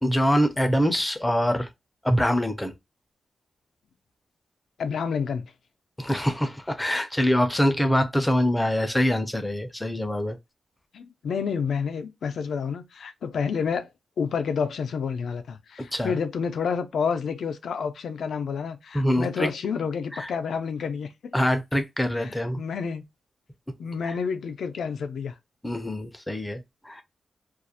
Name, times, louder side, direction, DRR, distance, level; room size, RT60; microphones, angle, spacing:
voice 1, 0.0-1.7 2.0-2.7 6.0-10.4 15.9-16.2 18.9-19.5 20.1-20.3 21.3-22.6 25.6-27.0, equal, 10° left, 0.4 m, -24 dB
voice 2, 4.8-5.5 10.9-13.9 14.2-21.3 22.2-23.0 23.8-25.3, left 6 dB, 80° left, 0.4 m, -29 dB
2.4 x 2.0 x 2.6 m
wide cardioid pair, 125°, 0 cm